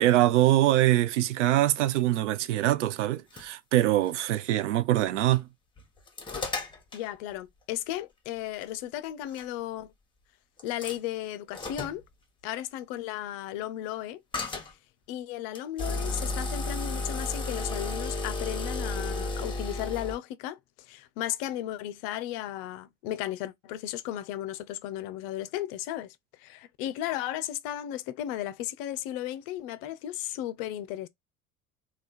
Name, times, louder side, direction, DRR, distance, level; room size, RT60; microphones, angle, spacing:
voice 1, 0.0-5.5, right 14 dB, 65° right, 0.5 m, -23 dB
sound 1, 3.0-3.5 4.0-4.1 5.0-5.4 5.8-7.1 8.6-8.7 9.3-9.4 10.6-11.0 11.5-12.0 14.3-14.7 15.5-20.2, left 2 dB, 10° left, 1.0 m, -33 dB
voice 2, 6.9-9.9 10.6-12.0 12.4-14.2 15.1-20.6 20.9-31.1, left 13 dB, 45° left, 0.5 m, -35 dB
3.4 x 2.3 x 4.2 m
figure-of-eight pair, 65°, 39 cm